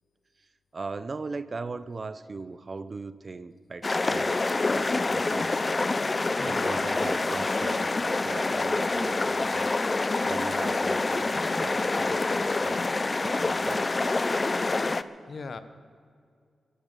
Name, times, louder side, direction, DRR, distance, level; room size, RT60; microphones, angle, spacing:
voice 1, 0.7-5.9 6.4-13.0 13.2-13.9, right 4 dB, 40° right, 14 dB, 0.7 m, -39 dB
sound 1, 3.8-15.0, left 3 dB, 30° left, 0.5 m, -27 dB
voice 2, 6.3-6.9 15.3-15.6, left 4 dB, 55° left, 11 dB, 1.0 m, -38 dB
22.5 x 11.5 x 5.5 m, 2.2 s
cardioid pair, 85°, 0 cm